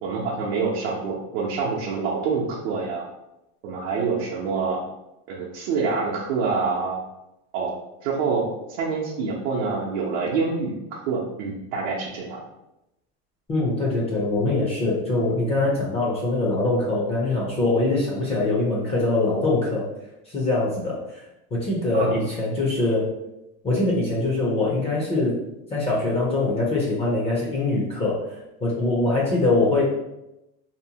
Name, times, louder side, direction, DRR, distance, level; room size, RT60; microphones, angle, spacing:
voice 1, 0.0-3.1 3.6-4.8 5.3-7.0 7.5-7.7 8.0-12.4 21.9-22.2, right 4 dB, 75° right, -4 dB, 0.7 m, -26 dB
voice 2, 13.5-19.9 20.3-21.2 21.5-23.1 23.6-25.3 25.7-29.8, left 2 dB, 20° left, -4 dB, 0.5 m, -23 dB
2.8 x 2.0 x 2.7 m, 0.89 s
supercardioid pair, 150°, 33 cm